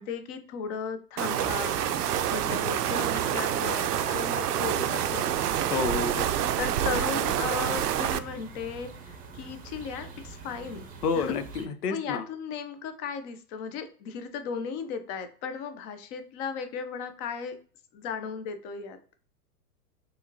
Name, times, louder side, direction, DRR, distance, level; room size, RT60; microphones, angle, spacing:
voice 1, 0.0-1.8 2.3-5.3 6.6-10.9 11.2-11.3 11.9-17.6 17.9-19.0, left 6 dB, 30° left, 9 dB, 0.6 m, -36 dB
sound 1, 1.2-8.2, right 10 dB, 75° right, 0.6 m, -27 dB
sound 2, 1.4-11.7, right 4 dB, 20° right, 0.7 m, -42 dB
voice 2, 5.7-6.3 11.0-12.3, left 5 dB, 70° left, 9 dB, 0.9 m, -29 dB
4.7 x 3.2 x 2.8 m, 0.42 s
figure-of-eight pair, 105°, 48 cm